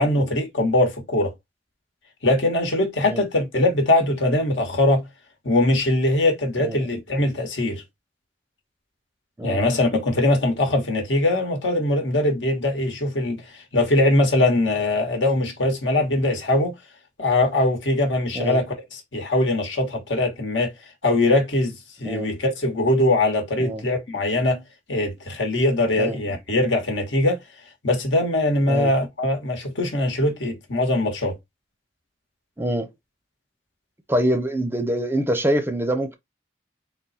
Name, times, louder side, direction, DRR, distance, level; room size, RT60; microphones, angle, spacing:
voice 1, 0.0-1.3 2.2-5.0 5.4-7.8 9.4-16.8 17.2-20.7 21.0-21.7 22.0-24.6 24.9-27.4 27.8-31.4, left 1 dB, 85° left, 1.4 m, -21 dB
voice 2, 32.6-32.9 34.1-36.1, right 1 dB, 10° right, 0.5 m, -25 dB
3.8 x 2.2 x 4.0 m
head